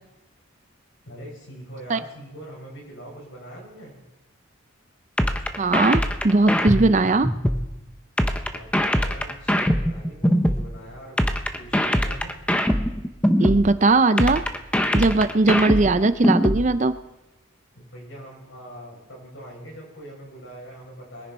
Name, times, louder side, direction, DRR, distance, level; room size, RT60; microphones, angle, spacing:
voice 1, 1.0-4.0 8.5-11.2 11.6-12.3 17.7-21.3, equal, 65° left, -2 dB, 7.0 m, -42 dB
sound 1, 5.2-7.7 8.2-10.7 11.2-13.7 14.2-16.7, equal, 5° left, 0.8 m, -22 dB
voice 2, 5.6-7.3 13.4-14.4 14.9-17.0, right 3 dB, 35° right, 12 dB, 0.5 m, -19 dB
22.5 x 10.5 x 4.3 m, 1.0 s
head